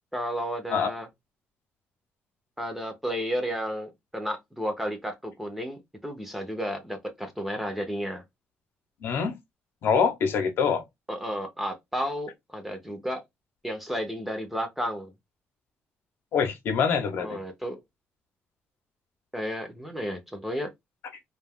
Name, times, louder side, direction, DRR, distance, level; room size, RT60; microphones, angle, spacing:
voice 1, 0.1-1.1 2.6-8.2 11.1-13.2 13.6-15.1 17.2-17.8 19.3-20.7, equal, 5° right, 0.6 m, -32 dB
voice 2, 9.0-9.3 9.8-10.8 16.3-17.4, left 6 dB, 65° left, 0.7 m, -25 dB
2.3 x 2.3 x 3.5 m
cardioid pair, 135°, 4 cm